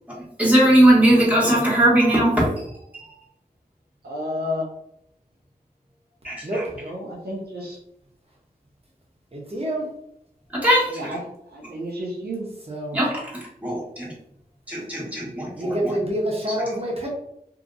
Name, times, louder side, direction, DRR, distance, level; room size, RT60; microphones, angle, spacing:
voice 1, 0.4-2.6 2.9-3.1 6.2-6.6 10.5-11.1 12.9-14.1 14.7-15.9, right 1 dB, 10° right, -6 dB, 1.4 m, -19 dB
voice 2, 4.0-4.7 6.8-7.8 10.9-11.2 11.5-12.5, left 1 dB, 85° right, -3 dB, 0.6 m, -31 dB
voice 3, 6.4-6.7 9.3-9.9 12.7-13.0 15.5-17.1, right 1 dB, 40° right, -2 dB, 1.0 m, -27 dB
2.8 x 2.7 x 2.5 m, 0.76 s
wide cardioid pair, 45°, 16 cm